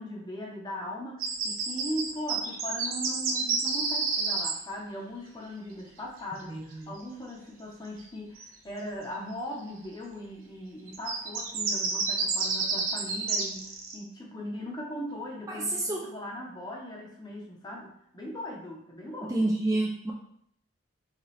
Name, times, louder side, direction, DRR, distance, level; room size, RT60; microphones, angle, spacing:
voice 1, 0.0-19.5, equal, 20° left, -1 dB, 0.8 m, -39 dB
sound 1, 1.2-4.5 8.4-8.5 10.9-14.0, right 4 dB, 90° right, 0.8 m, -29 dB
voice 2, 15.5-16.0 19.3-20.1, right 2 dB, 15° right, -2 dB, 0.3 m, -28 dB
4.2 x 3.6 x 3.2 m, 0.70 s
head